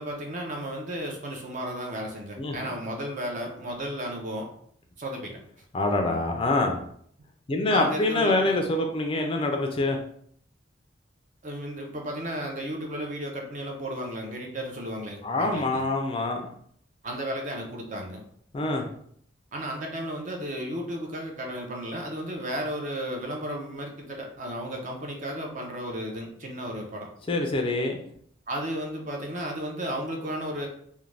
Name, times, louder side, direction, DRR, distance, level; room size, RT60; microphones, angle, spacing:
voice 1, 0.0-4.5 5.0-5.4 7.7-8.6 11.4-15.8 17.0-18.2 19.5-27.1 28.5-30.7, right 1 dB, 40° right, 1 dB, 0.5 m, -34 dB
voice 2, 2.4-2.8 5.7-6.8 7.5-10.0 15.2-16.5 18.5-18.8 27.3-28.0, left 2 dB, 30° left, 3 dB, 0.3 m, -25 dB
2.5 x 2.1 x 3.2 m, 0.65 s
head